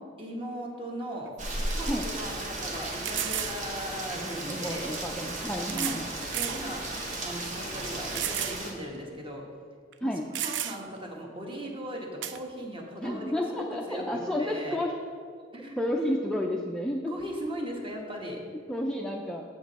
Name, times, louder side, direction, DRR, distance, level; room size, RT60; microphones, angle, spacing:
voice 1, 0.2-1.3 1.7-4.9 5.7-6.0 6.3-6.8 7.1-9.4 10.0-10.1 10.4-13.2 13.6-14.8 15.5-16.1 17.1-18.4, equal, 30° right, 0 dB, 1.2 m, -38 dB
sound 1, 1.3-1.4 1.9-2.0 3.0-3.6 4.7-4.8 5.7-6.0 6.3-6.6 7.1-7.2 8.2-8.6 9.0-9.1 9.9-10.0 10.3-11.0 12.2-12.4, right 11 dB, 70° right, 0.4 m, -32 dB
Rain, 1.4-8.7, right 1 dB, 45° right, 1.2 m, -35 dB
voice 2, 4.1-6.1 10.0-10.2 13.0-15.0 15.8-17.1 18.7-19.4, left 1 dB, 5° left, -1 dB, 0.4 m, -31 dB
7.4 x 7.3 x 4.1 m, 2.1 s
head